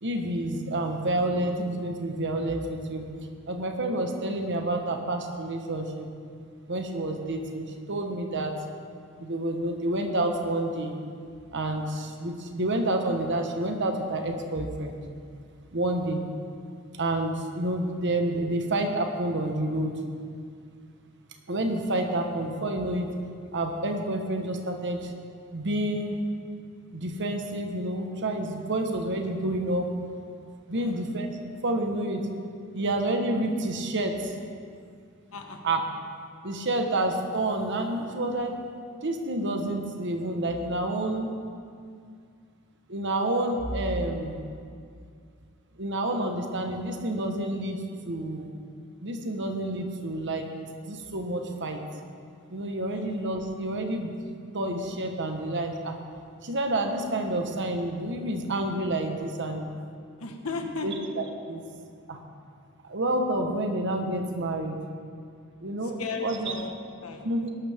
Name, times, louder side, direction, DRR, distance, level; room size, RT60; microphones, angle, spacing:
voice 1, 0.0-3.0 3.5-6.1 6.7-8.5 9.2-11.0 11.5-15.0 15.7-16.2 16.9-20.0 21.5-23.1 23.5-25.1 25.5-26.2 26.9-29.9 30.7-32.3 32.7-34.3 35.6-35.8 36.4-38.5 39.0-41.3 42.9-44.4 45.8-48.5 49.0-50.5 50.9-51.8 52.5-54.1 54.5-55.9 56.4-59.7 60.8-61.6 62.1-62.2 62.8-64.8 65.6-66.0 66.2-66.6 67.2-67.5, right 1 dB, 55° right, 4 dB, 1.3 m, -29 dB
voice 2, 35.3-35.6 52.9-53.0 60.2-60.9 66.0-67.2, left 4 dB, 85° left, 3 dB, 1.5 m, -35 dB
20.0 x 12.0 x 3.6 m, 2.3 s
head